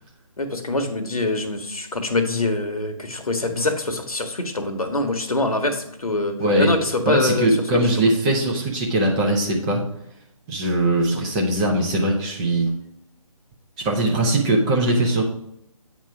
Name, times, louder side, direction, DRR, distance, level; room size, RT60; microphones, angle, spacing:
voice 1, 0.4-8.1, left 2 dB, 80° left, 6 dB, 1.2 m, -24 dB
voice 2, 6.4-6.7 7.1-9.8 10.5-12.7 13.8-15.2, right 1 dB, 10° right, -2 dB, 0.7 m, -20 dB
9.0 x 3.1 x 4.8 m, 0.77 s
figure-of-eight pair, 150°, 18 cm